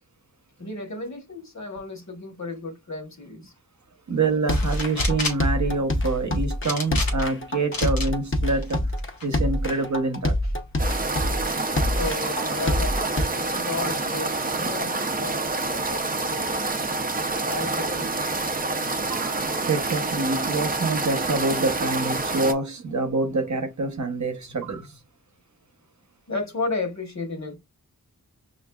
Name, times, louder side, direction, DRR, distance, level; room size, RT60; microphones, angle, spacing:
voice 1, 0.6-3.5 12.0-16.6 17.4-18.1 26.3-27.6, left 3 dB, 55° left, 1.2 m, -33 dB
voice 2, 4.1-8.9 9.2-10.4 18.8-25.0, right 3 dB, 55° right, 0.8 m, -26 dB
sound 1, 4.5-5.5 6.6-7.4 7.7-8.1 8.6-9.3, left 2 dB, 80° left, 0.8 m, -31 dB
sound 2, 4.5-13.2, left 1 dB, 35° left, 0.6 m, -25 dB
sound 3, 10.8-22.5, right 3 dB, 25° right, 0.5 m, -27 dB
5.8 x 2.5 x 2.3 m
wide cardioid pair, 80°, 34 cm